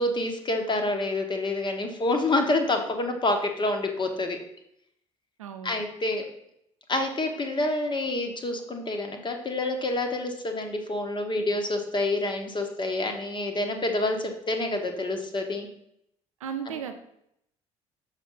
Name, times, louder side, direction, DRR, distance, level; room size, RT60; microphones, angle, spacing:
voice 1, 0.0-4.4 5.6-6.2 6.9-15.7 16.7-16.8, left 2 dB, 30° left, 4 dB, 1.3 m, -27 dB
voice 2, 5.4-5.8 16.4-16.9, right 8 dB, 80° right, 7 dB, 0.7 m, -35 dB
6.7 x 4.1 x 5.5 m, 0.76 s
figure-of-eight pair, 55°, 16 cm